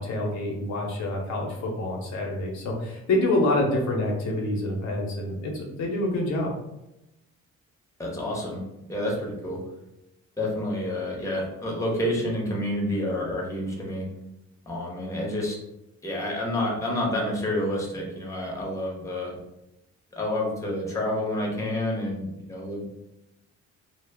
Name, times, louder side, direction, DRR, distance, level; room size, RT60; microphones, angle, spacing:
voice 1, 0.0-6.5, left 1 dB, 65° left, -1 dB, 0.7 m, -27 dB
voice 2, 8.0-8.6 8.9-9.6 10.4-14.1 14.7-15.6 16.0-19.4 20.1-23.0, left 1 dB, 10° left, -3 dB, 0.8 m, -29 dB
2.0 x 2.0 x 3.4 m, 0.91 s
cardioid pair, 90°, 30 cm